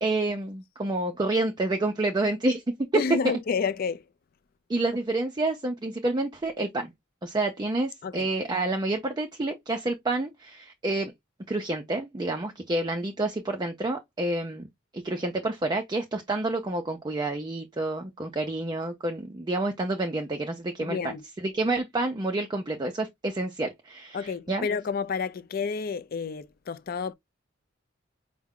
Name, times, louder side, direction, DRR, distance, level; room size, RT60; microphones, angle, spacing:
voice 1, 0.0-2.6 3.2-3.3 4.7-6.9 7.2-11.1 11.5-14.7 14.9-21.0 21.4-24.7, right 2 dB, 20° right, 0.4 m, -29 dB
voice 2, 2.9-4.0 8.0-8.3 20.8-21.2 24.1-27.1, left 5 dB, 50° left, 0.4 m, -30 dB
4.6 x 2.0 x 3.6 m
head